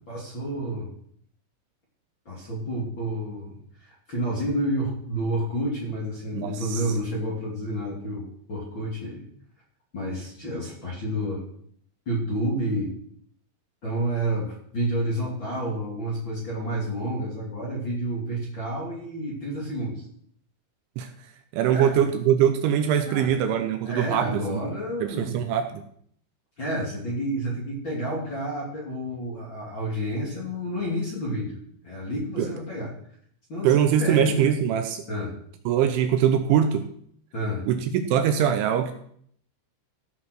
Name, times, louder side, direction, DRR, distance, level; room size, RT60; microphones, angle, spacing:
voice 1, 0.1-0.9 2.2-9.2 9.9-11.4 12.1-12.9 13.8-20.0 21.7-22.0 23.0-25.4 26.6-32.9 33.5-34.4 35.1-35.3 37.3-37.6, right 1 dB, 30° left, -4 dB, 2.4 m, -30 dB
voice 2, 6.3-6.8 21.0-21.1 21.5-24.6 25.0-25.8 32.4-32.5 33.6-35.0 35.7-36.9 37.7-38.9, right 9 dB, 80° right, 7 dB, 3.1 m, -22 dB
15.5 x 5.8 x 6.2 m, 0.63 s
omnidirectional pair, 5.8 m